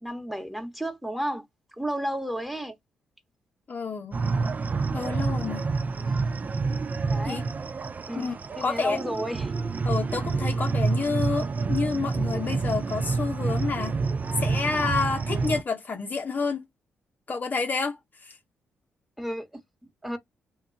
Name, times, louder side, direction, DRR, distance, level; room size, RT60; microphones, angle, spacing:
voice 1, 0.0-1.4 1.8-2.8 5.3-5.4 5.8-5.9 7.1-7.5 8.1-8.3 8.6-9.5 19.2-20.2, equal, 5° right, 1.1 m, -32 dB
voice 2, 3.7-4.2 4.9-5.7 7.2-7.4 8.1-8.3 8.6-9.0 9.8-14.0 14.4-16.7 17.3-18.4, left 4 dB, 40° left, 0.7 m, -29 dB
sound 1, 4.1-15.6, right 4 dB, 35° right, 0.4 m, -28 dB
2.9 x 2.2 x 3.7 m
supercardioid pair, 60°, 4 cm